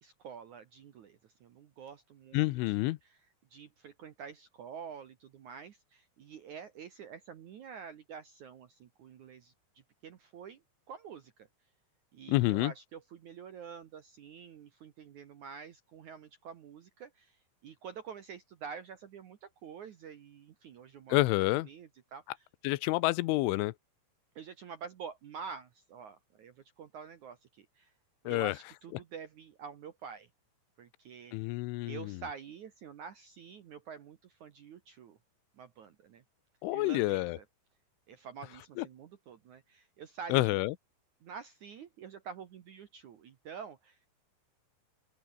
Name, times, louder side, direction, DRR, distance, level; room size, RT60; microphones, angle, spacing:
voice 1, 0.0-2.9 3.5-9.5 10.0-10.6 10.9-11.3 12.1-17.4 17.6-21.2 21.6-22.2 24.4-27.9 28.2-30.3 30.8-31.5 31.8-35.2 35.6-36.2 36.7-37.4 38.1-40.6 41.2-44.0, right 7 dB, 65° right, 1.9 m, -47 dB
voice 2, 2.3-3.0 12.3-12.7 21.1-21.7 22.6-23.7 28.3-28.6 31.3-32.2 36.6-37.4 38.8-38.9 40.3-40.7, left 20 dB, 90° left, 3.3 m, -28 dB
open air
omnidirectional pair, 5.4 m